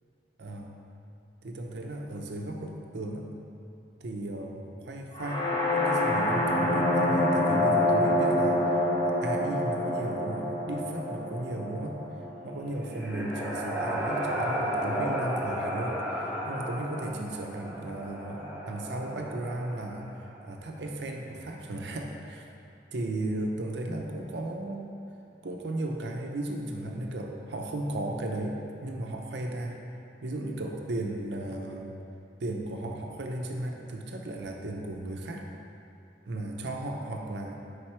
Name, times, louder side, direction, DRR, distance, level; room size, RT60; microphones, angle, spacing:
voice 1, 0.4-0.8 1.4-3.3 4.0-8.6 9.0-12.0 12.4-20.1 20.4-22.4 22.9-24.9 25.4-29.8 30.2-32.0 32.4-35.5 36.3-37.6, right 1 dB, 75° right, 2 dB, 0.6 m, -35 dB
sound 1, 5.1-13.0, left 1 dB, 25° left, 0.7 m, -27 dB
sound 2, 12.5-20.3, equal, 10° right, 0.8 m, -33 dB
4.9 x 4.6 x 4.3 m, 2.8 s
head